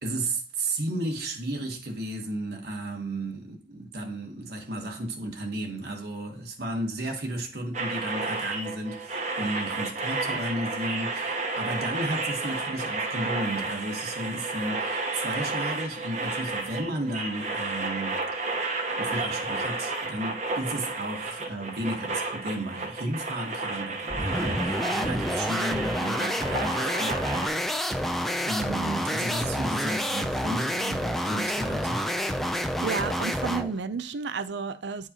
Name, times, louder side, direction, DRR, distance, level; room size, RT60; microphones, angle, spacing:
voice 1, 0.0-18.5 19.0-27.5 27.8-32.0, right 1 dB, 55° right, 1.2 m, -33 dB
sound 1, 7.7-27.5, right 3 dB, 40° right, 1.0 m, -32 dB
sound 2, 24.1-33.7, equal, ahead, 0.4 m, -28 dB
voice 2, 32.8-35.1, right 5 dB, 75° right, 0.5 m, -31 dB
9.6 x 4.7 x 2.8 m
head